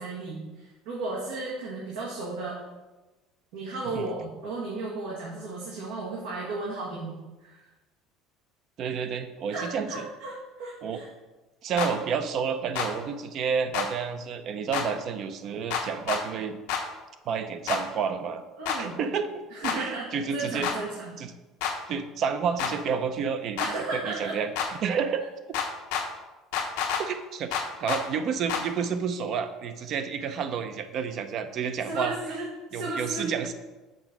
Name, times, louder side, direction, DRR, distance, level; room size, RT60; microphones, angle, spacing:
voice 1, 0.0-2.6 3.5-7.6 9.5-11.1 18.6-19.0 19.5-21.1 23.6-24.4 31.9-33.3, right 3 dB, 85° right, -5 dB, 1.5 m, -34 dB
voice 2, 8.8-10.0 10.8-11.0 11.6-16.6 17.3-18.4 18.8-19.4 19.7-20.7 21.2-21.3 21.9-24.5 24.8-25.3 27.0-32.2 32.7-33.5, right 6 dB, 50° right, 9 dB, 0.6 m, -30 dB
sound 1, 11.8-11.9 12.7-12.9 13.7-13.9 14.7-14.9 15.7-16.2 16.7-16.8 17.7-17.8 18.7-18.8 19.6-19.8 20.6-20.8 21.6-21.7 22.6-22.7 23.6-23.7 24.6-24.7 25.5-26.0 26.5-27.0 27.5-28.0 28.5-28.6, left 7 dB, 90° left, 1.0 m, -28 dB
6.2 x 3.9 x 6.0 m, 1.1 s
cardioid pair, 130°, 0 cm